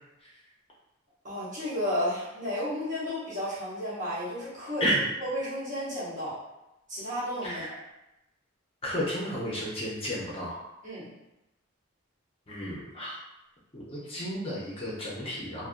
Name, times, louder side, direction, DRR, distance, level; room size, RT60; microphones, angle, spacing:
voice 1, 1.2-4.9 5.2-6.4 6.9-7.6 10.8-11.1, equal, 40° right, -10 dB, 1.1 m, -32 dB
voice 2, 8.8-10.6 12.5-13.2 13.7-15.7, equal, 30° left, -6 dB, 0.5 m, -32 dB
2.4 x 2.0 x 2.4 m, 0.92 s
head